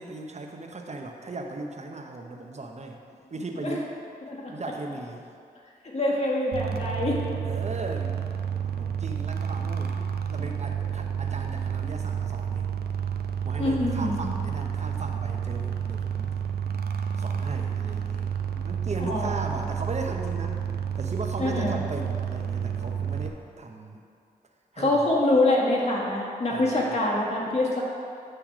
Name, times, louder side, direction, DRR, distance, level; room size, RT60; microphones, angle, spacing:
voice 1, 0.0-3.0 3.3-3.9 4.5-5.3 7.4-8.3 8.8-10.0 10.3-12.7 13.4-16.3 17.2-18.4 18.6-20.6 21.0-24.0 24.7-25.1 26.5-26.8, right 2 dB, 45° right, 2 dB, 0.9 m, -37 dB
voice 2, 4.3-4.7 5.9-7.2 13.6-14.3 19.0-19.4 21.4-21.8 24.8-27.8, left 2 dB, 40° left, -4 dB, 1.9 m, -25 dB
sound 1, 6.5-23.3, right 8 dB, 75° right, 0.5 m, -30 dB
8.9 x 3.4 x 6.0 m, 2.5 s
cardioid pair, 40°, 16 cm